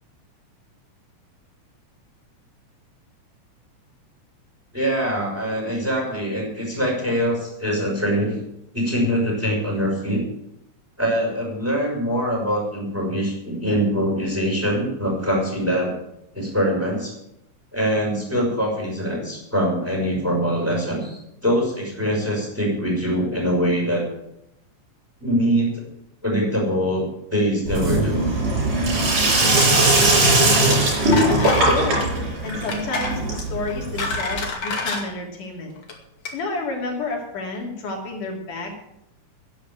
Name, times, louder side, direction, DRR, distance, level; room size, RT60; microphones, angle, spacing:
voice 1, 4.7-8.4 8.7-10.2 11.0-15.9 16.3-17.1 17.7-24.0 25.2-25.8 26.2-28.3, equal, 5° right, -2 dB, 5.9 m, -23 dB
Sink (filling or washing), 27.7-34.4, right 2 dB, 85° right, 7.4 m, -19 dB
voice 2, 30.4-30.9 31.6-35.7 36.3-38.7, left 3 dB, 80° left, 0 dB, 4.5 m, -30 dB
sound 1, 31.1-31.7 32.0-32.2 32.7-33.2 33.7-35.0 35.8-35.9 36.2-36.3, left 4 dB, 55° left, 3.5 m, -27 dB
11.0 x 10.5 x 9.0 m, 0.82 s
omnidirectional pair, 3.6 m